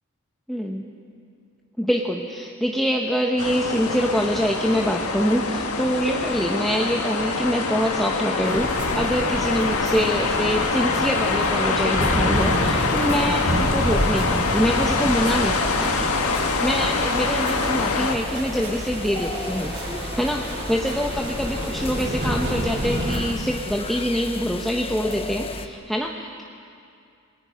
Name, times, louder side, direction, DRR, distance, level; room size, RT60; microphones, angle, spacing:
voice 1, 0.5-0.9 1.8-8.7 9.0-16.1 16.6-26.4, equal, ahead, -1 dB, 1.0 m, -25 dB
sound 1, 3.4-18.2, left 4 dB, 85° left, 1.7 m, -24 dB
sound 2, 8.4-23.2, right 1 dB, 55° right, 7.3 m, -29 dB
sound 3, 12.3-25.7, left 3 dB, 25° left, 0.9 m, -35 dB
27.0 x 21.5 x 5.2 m, 2.4 s
head